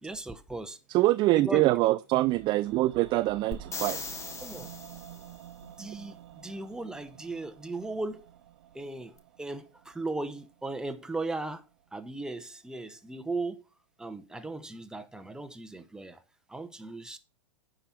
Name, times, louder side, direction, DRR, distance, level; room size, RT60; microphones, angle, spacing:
voice 1, 0.0-0.8 1.3-1.8 4.4-4.7 5.6-8.3 8.7-13.6 14.0-16.2 16.5-17.2, right 2 dB, 5° right, 1.0 m, -37 dB
voice 2, 0.9-4.1, right 18 dB, 30° right, 0.4 m, -24 dB
sound 1, 2.1-12.2 12.5-12.6, right 11 dB, 60° right, 0.8 m, -51 dB
sound 2, 3.5-5.4 9.2-9.3, left 4 dB, 20° left, 1.3 m, -39 dB
10.0 x 5.0 x 5.9 m
figure-of-eight pair, 105°, 16 cm